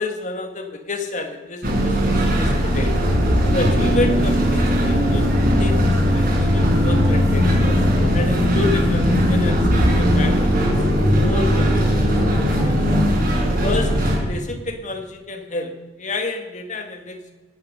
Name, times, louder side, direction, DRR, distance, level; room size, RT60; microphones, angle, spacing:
voice 1, 0.0-2.9 3.5-5.8 6.1-7.5 8.1-10.8 11.2-12.1 12.5-12.8 13.6-17.3, left 3 dB, 35° left, 5 dB, 1.8 m, -29 dB
sound 1, 1.6-14.2, equal, 45° right, 4.9 m, -19 dB
sound 2, 2.2-14.4, equal, 15° left, 6.9 m, -28 dB
sound 3, 3.6-10.4, left 1 dB, 15° right, 1.8 m, -26 dB
20.5 x 11.5 x 5.3 m, 1.3 s
head